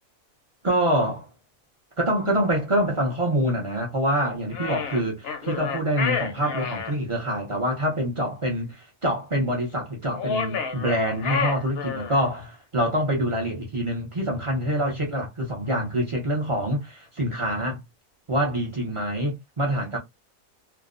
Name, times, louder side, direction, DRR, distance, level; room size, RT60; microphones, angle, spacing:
voice 1, 0.6-1.3 2.0-17.8 18.3-20.0, equal, 50° right, 0.3 m, -25 dB
sound 1, 4.5-6.9 10.1-12.3, left 5 dB, 65° left, 0.6 m, -29 dB
2.5 x 2.1 x 2.4 m
omnidirectional pair, 1.5 m